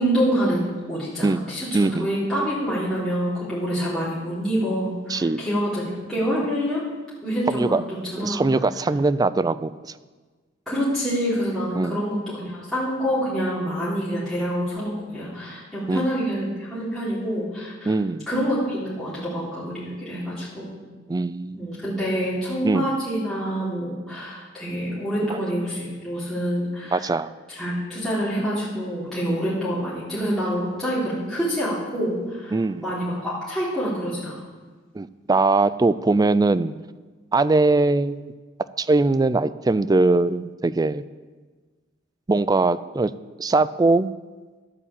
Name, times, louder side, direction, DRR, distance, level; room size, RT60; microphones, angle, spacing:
voice 1, 0.0-6.8 7.2-8.4 10.6-17.9 18.3-20.8 21.5-27.0 27.5-34.3, equal, ahead, -11 dB, 3.3 m, -26 dB
voice 2, 1.7-2.1 5.1-5.4 7.5-7.8 8.2-9.9 11.8-12.0 15.9-16.1 17.8-18.3 21.1-21.7 22.6-22.9 25.3-25.4 26.9-27.3 32.5-32.8 35.0-36.7 37.3-38.3 38.8-41.0 42.3-43.1 43.4-44.1, right 3 dB, 20° right, 16 dB, 0.3 m, -21 dB
12.0 x 8.4 x 7.3 m, 1.4 s
head